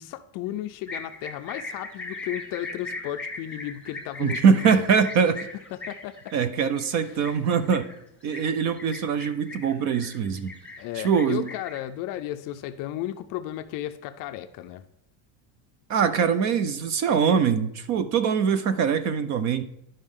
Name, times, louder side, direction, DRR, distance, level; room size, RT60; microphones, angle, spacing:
voice 1, 0.0-4.8 5.7-6.3 10.8-14.8, left 13 dB, 45° left, 9 dB, 0.4 m, -34 dB
sound 1, 0.9-11.8, left 3 dB, ahead, 1.2 m, -39 dB
voice 2, 4.2-5.5 6.3-7.8 8.2-10.5 11.0-11.5 15.9-19.6, right 6 dB, 40° right, 12 dB, 0.4 m, -23 dB
11.5 x 5.3 x 3.6 m, 0.76 s
cardioid pair, 155°, 48 cm